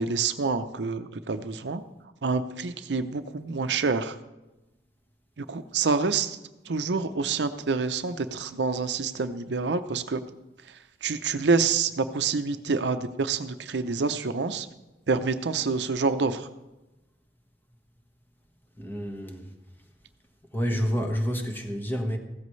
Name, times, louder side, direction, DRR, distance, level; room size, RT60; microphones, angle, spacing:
voice 1, 0.0-1.8 2.2-4.1 5.4-6.4 6.7-10.2 11.0-14.7 15.1-16.5, right 4 dB, 75° right, 10 dB, 0.7 m, -27 dB
voice 2, 18.8-19.5 20.5-22.2, equal, 10° left, 3 dB, 1.4 m, -29 dB
15.5 x 13.5 x 3.2 m, 1.0 s
head